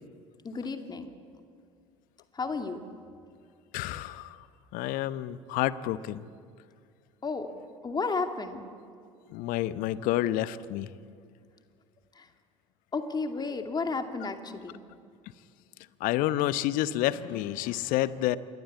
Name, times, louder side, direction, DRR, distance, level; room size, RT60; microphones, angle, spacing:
voice 1, 0.4-1.1 2.3-2.8 7.2-7.5 7.8-8.6 12.2-12.3 12.9-14.8, left 4 dB, 25° left, 6 dB, 2.5 m, -32 dB
voice 2, 3.7-4.5 4.7-6.2 9.3-10.9 16.0-18.4, left 14 dB, 55° left, 16 dB, 1.0 m, -29 dB
27.0 x 21.5 x 8.5 m, 2.2 s
figure-of-eight pair, 65°, 17 cm